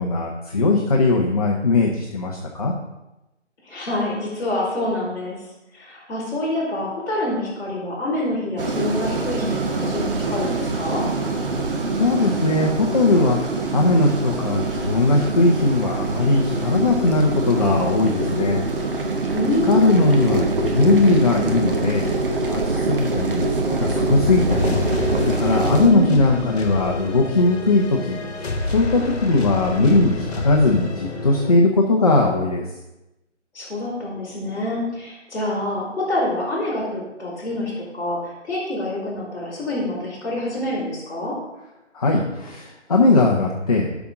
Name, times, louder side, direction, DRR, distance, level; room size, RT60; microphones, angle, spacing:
voice 1, 0.0-2.7 11.9-19.0 19.7-22.0 22.3-32.6 41.9-43.9, left 2 dB, 30° left, -1 dB, 0.8 m, -19 dB
voice 2, 3.6-5.4 5.7-11.0 19.3-20.0 25.8-26.5 33.5-41.3, left 1 dB, 10° left, -13 dB, 3.3 m, -26 dB
sound 1, 8.6-25.9, right 3 dB, 45° right, 1.2 m, -24 dB
sound 2, 23.3-31.5, left 2 dB, 60° left, 1.4 m, -29 dB
11.5 x 6.0 x 3.7 m, 0.95 s
figure-of-eight pair, 155°, 36 cm